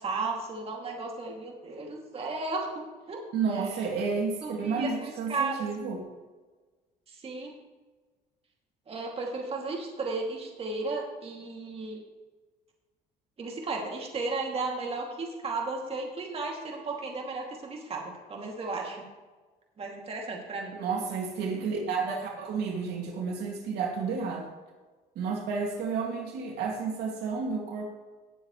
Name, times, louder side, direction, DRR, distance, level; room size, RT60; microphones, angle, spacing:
voice 1, 0.0-3.2 3.5-3.9 4.4-5.5 7.1-7.6 8.9-12.0 13.4-19.0 19.8-20.8, right 3 dB, 35° right, 0 dB, 2.6 m, -34 dB
voice 2, 3.3-6.1 20.7-24.5 25.2-27.9, right 5 dB, 75° right, 0 dB, 2.4 m, -31 dB
18.5 x 7.6 x 3.2 m, 1.3 s
cardioid pair, 110°, 17 cm